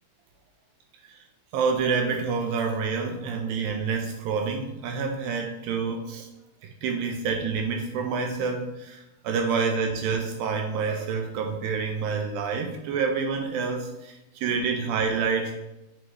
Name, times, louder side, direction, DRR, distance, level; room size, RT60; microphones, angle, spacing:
voice 1, 1.5-6.3 6.8-15.5, right 5 dB, 85° right, 3 dB, 2.1 m, -28 dB
7.7 x 4.9 x 3.0 m, 0.93 s
omnidirectional pair, 4.6 m